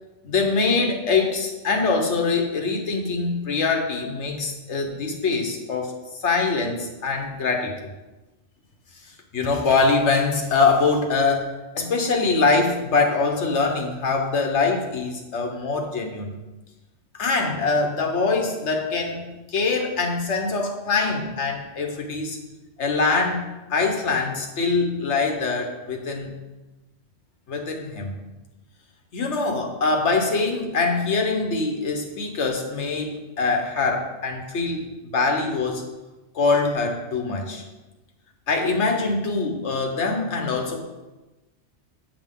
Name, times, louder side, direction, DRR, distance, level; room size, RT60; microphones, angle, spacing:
voice 1, 0.2-5.9 6.2-7.7 9.3-16.3 17.1-22.4 22.8-26.3 27.5-28.2 29.1-35.8 36.3-37.6 38.5-40.8, left 4 dB, 85° left, 3 dB, 1.4 m, -23 dB
7.6 x 7.1 x 3.7 m, 1.1 s
omnidirectional pair, 1.2 m